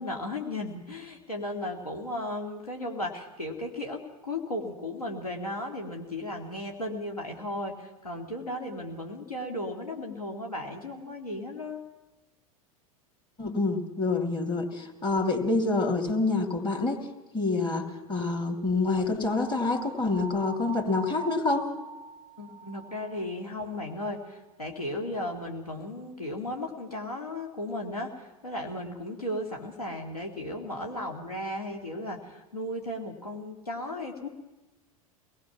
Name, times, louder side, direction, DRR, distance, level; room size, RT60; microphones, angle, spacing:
voice 1, 0.0-11.8 22.4-34.3, left 1 dB, 85° left, 0 dB, 2.3 m, -35 dB
voice 2, 13.4-17.0 17.3-21.7, left 3 dB, 25° left, 5 dB, 2.8 m, -27 dB
sound 1, 19.3-24.4, right 6 dB, 40° left, 3.4 m, -44 dB
23.5 x 19.5 x 5.9 m, 1.1 s
figure-of-eight pair, 85°, 19 cm